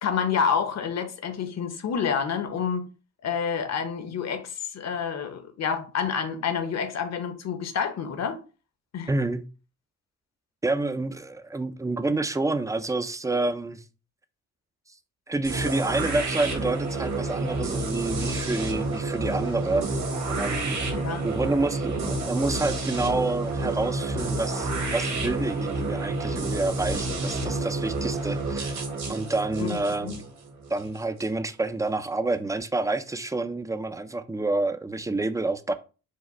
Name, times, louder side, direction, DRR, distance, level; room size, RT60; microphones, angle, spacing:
voice 1, 0.0-2.9 3.2-8.4 8.9-9.1 21.0-21.3 29.6-30.2, left 6 dB, 60° left, 0.8 m, -28 dB
voice 2, 9.1-9.5 10.6-13.8 15.3-19.9 20.3-20.8 21.2-30.3 30.7-35.7, right 2 dB, 10° right, 0.3 m, -28 dB
sound 1, 15.4-31.3, right 2 dB, 65° right, 1.5 m, -29 dB
4.8 x 2.1 x 4.2 m
cardioid pair, 100°, 30 cm